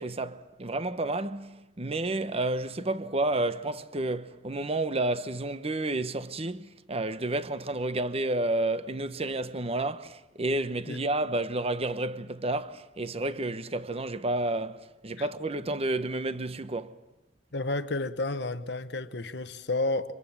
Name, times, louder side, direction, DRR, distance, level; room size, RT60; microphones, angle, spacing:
voice 1, 0.0-17.0, right 2 dB, 35° right, 1.1 m, -30 dB
voice 2, 17.5-20.1, left 2 dB, 65° left, 1.2 m, -31 dB
29.5 x 25.5 x 7.3 m
head